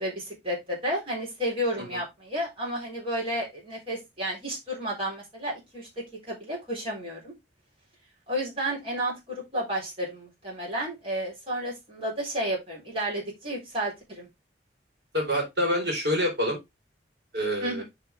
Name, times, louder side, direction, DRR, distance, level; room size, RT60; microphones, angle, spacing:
voice 1, 0.0-5.9 6.3-7.3 8.3-14.3 17.6-17.8, equal, 35° right, -4 dB, 4.0 m, -32 dB
voice 2, 15.1-16.6 17.3-17.8, equal, 65° right, -1 dB, 4.1 m, -26 dB
6.9 x 5.9 x 3.5 m, 0.20 s
head